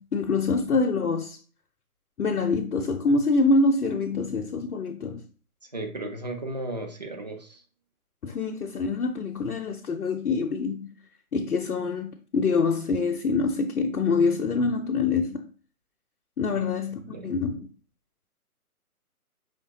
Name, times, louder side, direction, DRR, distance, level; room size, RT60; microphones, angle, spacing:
voice 1, 0.0-1.4 2.2-5.2 8.2-10.9 11.3-15.5 16.4-17.7, left 3 dB, 75° left, 0.6 m, -25 dB
voice 2, 5.7-7.6 16.5-16.6 17.1-17.3, right 2 dB, 30° right, 0.5 m, -35 dB
5.0 x 3.2 x 2.8 m
figure-of-eight pair, 135°, 44 cm